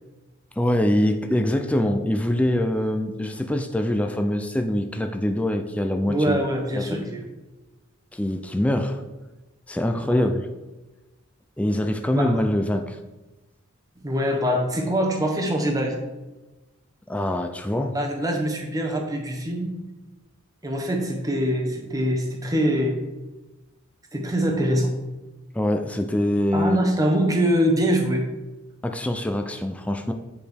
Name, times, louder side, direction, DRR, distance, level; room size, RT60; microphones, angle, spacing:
voice 1, 0.6-6.4 6.7-7.1 8.1-9.0 9.7-10.5 11.6-13.0 17.1-18.0 25.5-26.9 28.8-30.1, left 1 dB, 5° left, 5 dB, 0.4 m, -24 dB
voice 2, 6.1-7.2 10.0-10.3 12.1-12.3 14.0-15.9 17.9-19.7 20.6-23.0 24.1-24.9 26.5-28.2, equal, 15° right, 2 dB, 1.0 m, -23 dB
8.3 x 4.9 x 3.5 m, 1.1 s
head